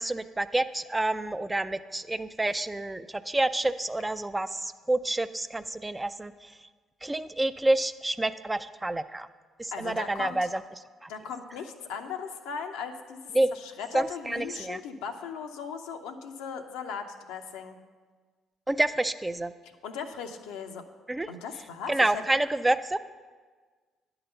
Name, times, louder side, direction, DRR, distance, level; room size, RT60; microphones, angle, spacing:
voice 1, 0.0-6.5 7.0-9.3 9.6-10.6 11.0-11.1 13.3-13.5 13.9-14.8 18.7-19.5 21.1-21.3 21.9-23.0, right 2 dB, 15° right, 12 dB, 0.4 m, -28 dB
voice 2, 9.7-10.4 11.1-13.2 13.5-17.8 19.6-20.8 21.3-22.2, left 6 dB, 80° left, 5 dB, 0.6 m, -38 dB
10.0 x 3.9 x 6.7 m, 1.5 s
hypercardioid pair, 55°, 0 cm